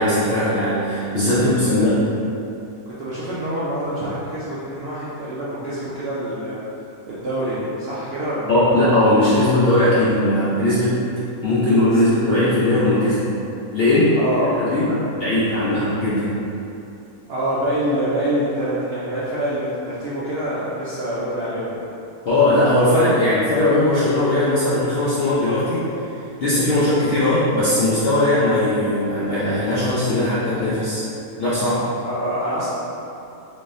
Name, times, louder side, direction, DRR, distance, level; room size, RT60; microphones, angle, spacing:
voice 1, 0.0-2.0 8.5-11.0 11.4-13.3 13.7-14.9 15.2-16.3 22.3-25.9 26.4-31.1 31.4-31.9, left 1 dB, 60° left, -10 dB, 0.6 m, -19 dB
voice 2, 1.3-1.9 2.9-6.6 7.1-8.6 11.9-12.0 14.2-15.0 15.6-15.8 17.3-21.8 32.0-32.7, right 1 dB, 65° right, -10 dB, 0.6 m, -26 dB
3.6 x 3.5 x 2.6 m, 2.7 s
omnidirectional pair, 1.6 m